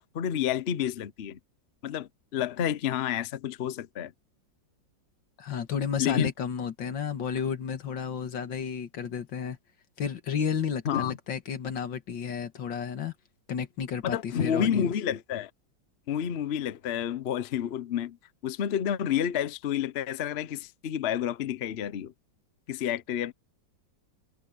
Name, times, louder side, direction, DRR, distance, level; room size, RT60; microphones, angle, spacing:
voice 1, 0.1-1.4 1.8-4.1 6.0-6.3 10.8-11.2 14.0-15.5 16.1-18.2 18.4-22.1 22.7-23.3, left 9 dB, 55° left, 0.7 m, -29 dB
voice 2, 5.4-9.6 10.0-13.1 13.5-14.9, left 7 dB, 80° left, 2.3 m, -32 dB
omnidirectional pair, 2.0 m